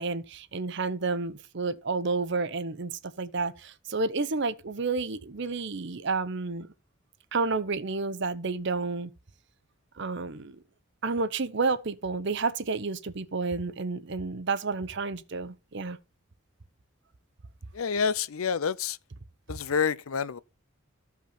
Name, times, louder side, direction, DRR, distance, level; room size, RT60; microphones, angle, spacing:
voice 1, 0.0-6.7 7.3-9.1 10.0-10.6 11.0-16.0, right 4 dB, 60° right, 0.8 m, -30 dB
voice 2, 17.7-19.0 19.5-20.4, left 6 dB, 85° left, 0.6 m, -28 dB
14.0 x 5.7 x 4.3 m
head